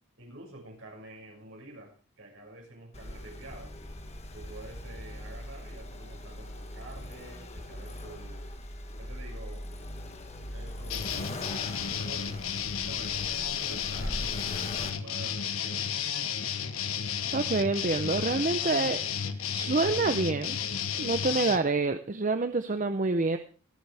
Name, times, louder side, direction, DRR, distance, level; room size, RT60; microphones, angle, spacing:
voice 1, 0.2-3.7 4.3-8.4 9.0-9.6 10.5-12.5 12.9-15.9, right 2 dB, 65° right, 0 dB, 6.3 m, -48 dB
Accelerating revving vroom, 2.9-14.9, left 1 dB, 30° left, 1.4 m, -41 dB
sound 1, 10.9-21.6, left 8 dB, 80° left, 1.2 m, -32 dB
voice 2, 17.3-19.0 19.5-20.6 21.0-23.4, right 3 dB, 35° right, 9 dB, 0.6 m, -27 dB
23.5 x 9.1 x 3.4 m, 0.38 s
head